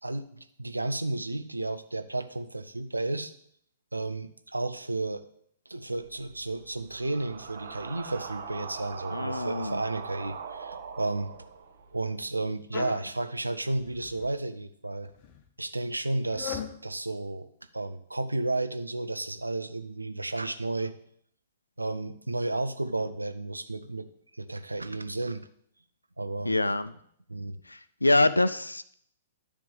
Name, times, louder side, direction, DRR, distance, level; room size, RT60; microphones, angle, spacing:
voice 1, 0.0-3.3 3.9-5.2 5.7-11.3 11.9-15.1 15.6-17.5 17.7-20.9 21.8-24.1 24.3-25.5 26.2-26.5 27.3-27.6, right 2 dB, 85° right, 10 dB, 0.7 m, -32 dB
sound 1, 6.0-12.1, right 6 dB, 55° right, 1.2 m, -41 dB
voice 2, 9.1-9.8 26.4-26.9 27.7-28.9, left 2 dB, 85° left, 14 dB, 0.4 m, -25 dB
sound 2, 12.7-13.1 13.7-14.4 15.0-15.4 16.3-16.8, left 8 dB, 35° left, 0.9 m, -38 dB
10.5 x 3.5 x 7.1 m, 0.66 s
figure-of-eight pair, 110°, 0 cm